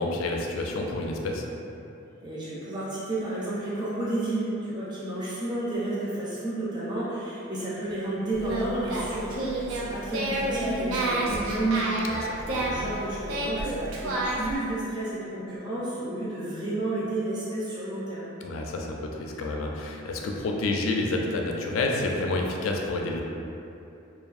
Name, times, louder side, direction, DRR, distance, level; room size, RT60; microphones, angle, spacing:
voice 1, 0.0-1.4 12.1-12.8 18.4-23.2, left 2 dB, 80° left, 0 dB, 0.3 m, -29 dB
voice 2, 2.2-18.3, right 2 dB, 20° right, -9 dB, 0.5 m, -31 dB
Singing, 8.3-14.6, right 1 dB, 80° right, 0.4 m, -30 dB
2.6 x 2.3 x 2.4 m, 2.8 s
head